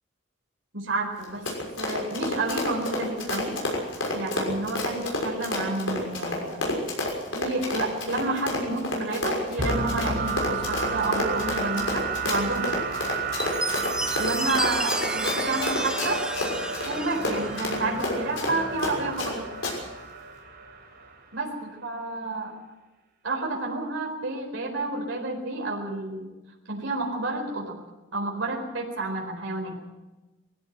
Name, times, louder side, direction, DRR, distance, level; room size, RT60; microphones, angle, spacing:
voice 1, 0.7-1.5 1.8-3.6 4.1-6.6 7.3-12.8 14.2-16.2 16.8-19.5 21.3-22.5 23.2-26.3 26.7-27.8 28.1-29.8, right 2 dB, 75° right, -1 dB, 4.5 m, -30 dB
Run, 1.2-19.3 19.6-19.7, left 2 dB, 75° left, 6.2 m, -29 dB
sound 1, 9.6-21.4, right 5 dB, 50° right, 4.7 m, -32 dB
Chime, 13.4-18.0, right 1 dB, 5° right, 0.9 m, -32 dB
20.5 x 16.0 x 8.2 m, 1.1 s
head